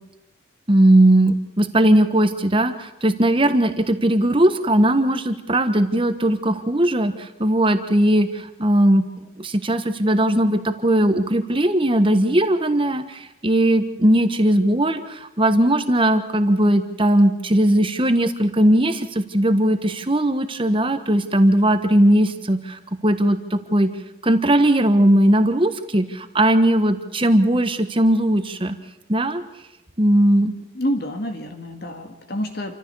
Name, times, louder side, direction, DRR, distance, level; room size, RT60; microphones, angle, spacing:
voice 1, 0.7-9.0 9.4-23.9 24.2-28.8 29.1-29.4 30.0-30.5, right 1 dB, 25° right, 9 dB, 1.3 m, -18 dB
voice 2, 30.8-32.7, equal, 50° left, 4 dB, 2.0 m, -28 dB
27.5 x 14.5 x 7.0 m, 0.95 s
head